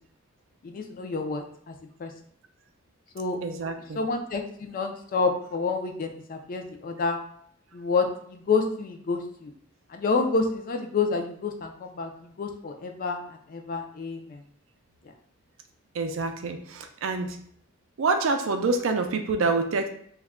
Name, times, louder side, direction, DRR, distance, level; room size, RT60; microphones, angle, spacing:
voice 1, 0.6-1.7 2.0-2.1 3.1-3.4 4.0-7.2 7.7-9.5 9.9-12.1 12.4-13.2 13.5-14.4, left 4 dB, 45° left, 4 dB, 0.4 m, -28 dB
voice 2, 3.4-4.0 15.9-17.4 18.0-19.9, right 3 dB, 75° right, 6 dB, 0.4 m, -26 dB
2.3 x 2.1 x 3.5 m, 0.63 s
head